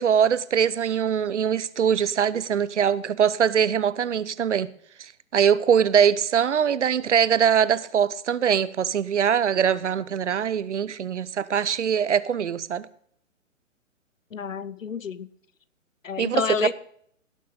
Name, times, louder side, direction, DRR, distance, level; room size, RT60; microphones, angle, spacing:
voice 1, 0.0-4.7 5.0-12.9 16.2-16.4, right 8 dB, 60° right, 0.7 m, -22 dB
voice 2, 14.3-15.3 16.0-16.7, left 6 dB, 70° left, 0.8 m, -29 dB
17.0 x 6.6 x 3.9 m
figure-of-eight pair, 125°, 40 cm